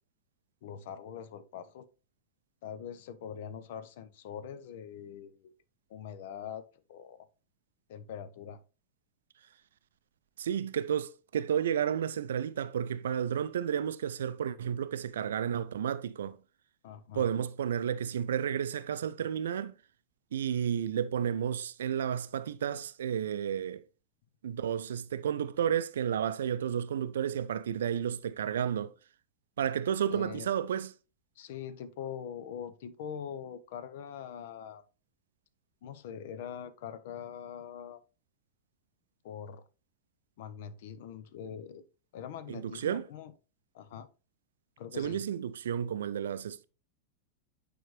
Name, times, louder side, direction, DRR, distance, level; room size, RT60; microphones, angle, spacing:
voice 1, 0.6-1.9 2.6-5.5 5.9-7.3 7.9-8.6 16.8-17.3 30.1-30.5 31.4-34.8 35.8-38.0 39.2-39.6 40.4-41.8 42.1-43.3 43.7-44.1 44.8-45.2, left 8 dB, 55° left, 0.7 m, -43 dB
voice 2, 10.4-16.4 17.2-19.7 20.3-23.8 24.4-28.9 29.6-30.9 42.5-43.0 45.0-46.6, right 9 dB, 65° right, 0.4 m, -32 dB
9.0 x 5.0 x 3.1 m
figure-of-eight pair, 90°, 0 cm